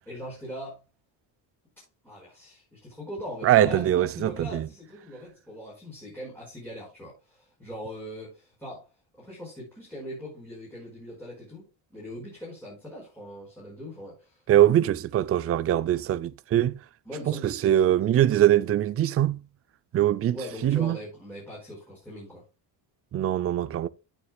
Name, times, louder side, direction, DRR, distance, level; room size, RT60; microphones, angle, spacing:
voice 1, 0.1-0.8 1.8-8.9 9.2-14.4 15.1-15.2 17.0-17.9 20.3-22.4, equal, 5° left, 4.8 m, -41 dB
voice 2, 3.4-4.7 14.5-16.8 17.3-19.4 19.9-20.4 20.6-21.0 23.1-23.9, right 12 dB, 30° right, 0.4 m, -22 dB
15.5 x 7.3 x 2.2 m
cardioid pair, 165°, 46 cm